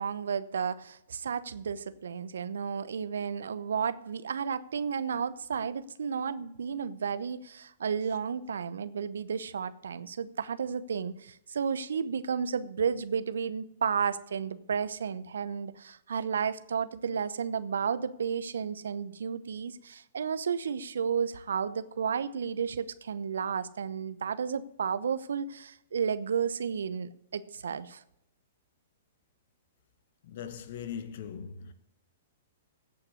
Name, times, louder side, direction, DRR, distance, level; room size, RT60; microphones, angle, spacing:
voice 1, 0.0-28.0, right 6 dB, 70° right, 0.8 m, -32 dB
voice 2, 30.2-31.7, left 8 dB, 55° left, 1.3 m, -40 dB
16.0 x 5.9 x 6.7 m
figure-of-eight pair, 115°, 0 cm